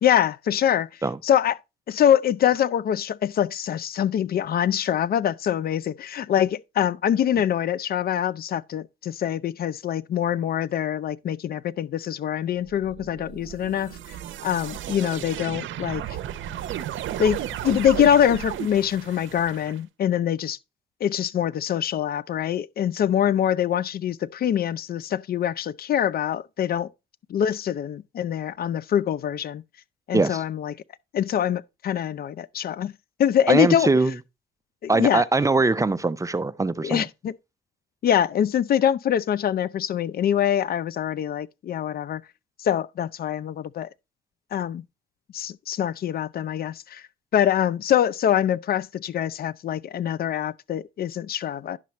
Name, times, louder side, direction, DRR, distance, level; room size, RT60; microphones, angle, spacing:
voice 1, 0.0-0.9 1.2-1.6 1.9-14.2 14.4-16.0 17.2-20.6 21.0-26.9 27.3-29.6 30.1-30.7 31.1-32.9 33.2-33.9 34.8-35.2 36.8-37.3 38.0-42.2 42.6-43.9 44.5-44.8 45.3-47.0 47.3-51.8, left 10 dB, 50° left, 0.4 m, -24 dB
sound 1, 12.7-19.8, right 11 dB, 75° right, 0.7 m, -34 dB
voice 2, 30.1-30.4 33.5-34.2 34.9-37.0, right 3 dB, 15° right, 0.5 m, -22 dB
10.5 x 5.7 x 3.1 m
cardioid pair, 90°, 20 cm